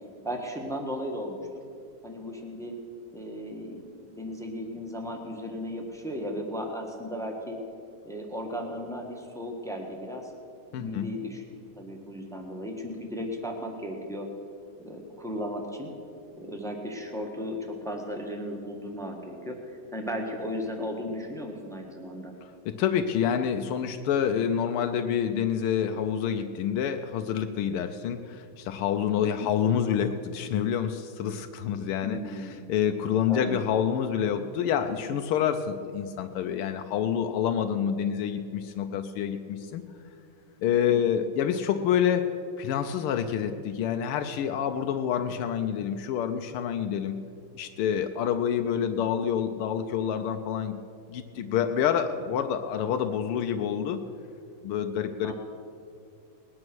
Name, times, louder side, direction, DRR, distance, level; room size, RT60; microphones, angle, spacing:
voice 1, 0.2-1.6 2.0-2.7 3.1-7.6 8.0-10.3 10.7-11.4 11.8-14.3 14.8-15.9 16.4-22.3 29.2-29.5 32.0-32.6 33.3-33.6 48.8-49.0 55.2-55.3, equal, ahead, 2 dB, 1.3 m, -36 dB
voice 2, 10.7-11.1 22.4-39.8 40.6-42.3 42.6-47.1 47.5-50.7 51.1-54.0 54.6-55.3, left 8 dB, 85° left, 7 dB, 1.6 m, -27 dB
20.0 x 9.7 x 6.2 m, 2.5 s
omnidirectional pair, 2.3 m